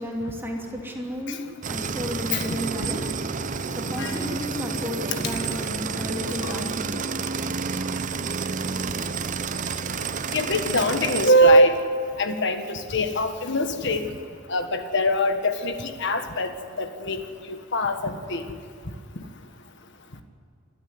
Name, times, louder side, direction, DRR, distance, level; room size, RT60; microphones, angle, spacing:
voice 1, 0.0-7.3, equal, 10° right, -1 dB, 2.8 m, -33 dB
sound 1, 1.6-11.3, right 5 dB, 40° right, 0.6 m, -30 dB
voice 2, 10.3-11.7 12.2-14.0 14.5-16.5 16.8-17.2 17.5-18.4, equal, 60° left, 7 dB, 1.6 m, -22 dB
27.5 x 13.0 x 9.6 m, 2.2 s
head